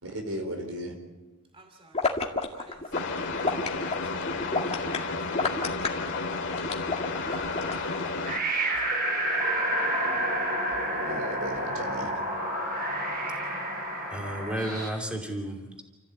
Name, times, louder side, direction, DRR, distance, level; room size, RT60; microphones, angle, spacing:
voice 1, 0.0-0.9 10.9-12.1, right 1 dB, 75° right, 4.8 m, -35 dB
voice 2, 1.5-2.1 2.5-5.4 5.8-6.0 6.9-7.8 8.1-8.5 8.8-8.9, right 1 dB, 25° right, 2.5 m, -55 dB
sound 1, 1.9-8.1, left 3 dB, 30° left, 2.2 m, -30 dB
sound 2, 2.9-8.4, left 3 dB, 55° left, 2.4 m, -32 dB
sound 3, 7.1-14.9, right 1 dB, 40° right, 5.7 m, -30 dB
voice 3, 14.1-15.8, right 1 dB, 5° right, 2.7 m, -32 dB
30.0 x 14.5 x 8.7 m
head